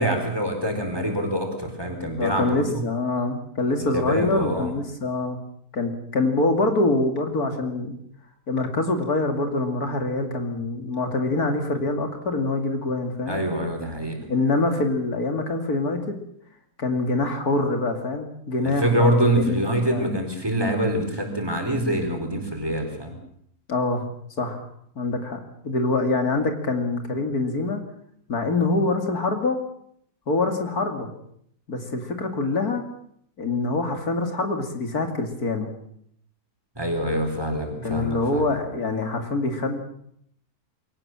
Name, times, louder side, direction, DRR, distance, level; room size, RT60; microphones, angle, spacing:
voice 1, 0.0-2.8 3.9-4.7 13.3-14.2 18.6-23.2 36.8-38.5, right 1 dB, 15° right, 3 dB, 4.4 m, -25 dB
voice 2, 2.2-5.4 5.7-8.0 8.5-13.4 14.3-16.2 16.8-20.1 23.7-24.0 24.4-24.7 25.0-27.8 28.3-29.6 30.3-31.1 31.7-32.8 33.4-35.7 37.8-39.8, left 2 dB, 80° left, 5 dB, 3.1 m, -25 dB
23.0 x 18.0 x 7.5 m, 0.69 s
omnidirectional pair, 1.6 m